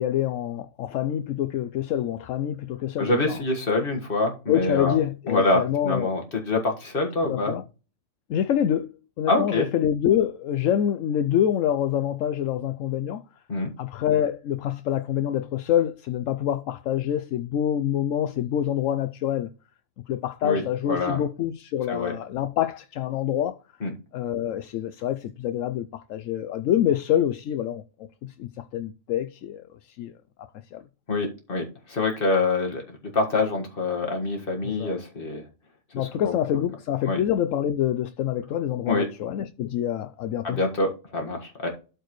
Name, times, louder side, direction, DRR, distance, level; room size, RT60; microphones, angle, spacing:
voice 1, 0.0-3.4 4.5-6.1 7.3-7.6 8.3-13.2 13.8-19.5 20.1-23.6 24.1-27.8 28.2-30.1 30.7-30.8 34.8-34.9 35.9-40.6, left 10 dB, 80° left, 1.0 m, -26 dB
voice 2, 3.0-5.0 5.3-7.5 9.3-9.7 13.5-13.7 20.4-20.6 20.9-21.2 21.9-22.1 23.8-23.9 31.1-35.4 36.0-36.3 37.1-37.2 38.9-39.1 40.4-41.7, left 2 dB, 45° left, 1.9 m, -25 dB
12.5 x 4.5 x 3.1 m
omnidirectional pair, 1.3 m